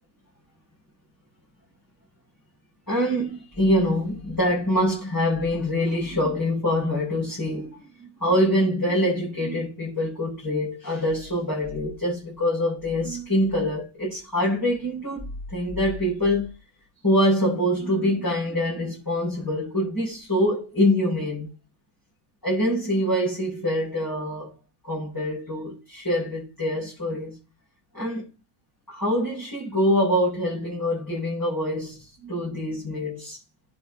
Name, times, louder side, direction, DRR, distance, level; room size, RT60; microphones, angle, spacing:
voice 1, 2.9-7.7 8.2-16.5 17.0-21.5 22.4-24.5 24.9-27.4 27.9-28.2 28.9-33.4, left 1 dB, 15° left, 7.7 m, -25 dB
10.5 x 7.2 x 4.0 m
omnidirectional pair, 1.5 m